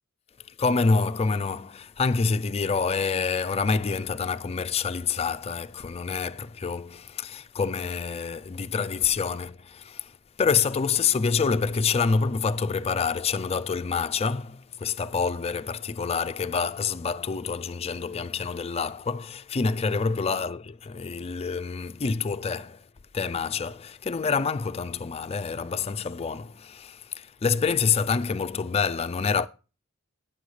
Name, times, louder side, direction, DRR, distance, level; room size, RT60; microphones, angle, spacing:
voice 1, 0.6-10.1 10.4-22.9 23.1-29.5, left 5 dB, 30° left, 0.4 m, -27 dB
19.0 x 7.1 x 3.2 m
head